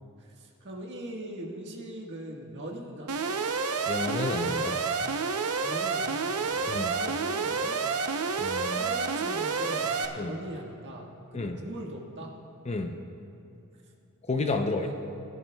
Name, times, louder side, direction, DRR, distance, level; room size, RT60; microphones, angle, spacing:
voice 1, 0.4-3.1 5.6-7.8 8.3-12.3 14.6-15.0, right 1 dB, 55° right, -1 dB, 1.5 m, -41 dB
Alarm, 3.1-10.1, right 5 dB, 75° right, 0.7 m, -29 dB
voice 2, 3.9-4.8 6.7-6.9 8.4-8.9 10.2-10.3 11.3-11.6 12.7-12.9 14.3-15.0, left 2 dB, 30° left, 6 dB, 0.6 m, -31 dB
21.0 x 11.0 x 2.3 m, 2.7 s
head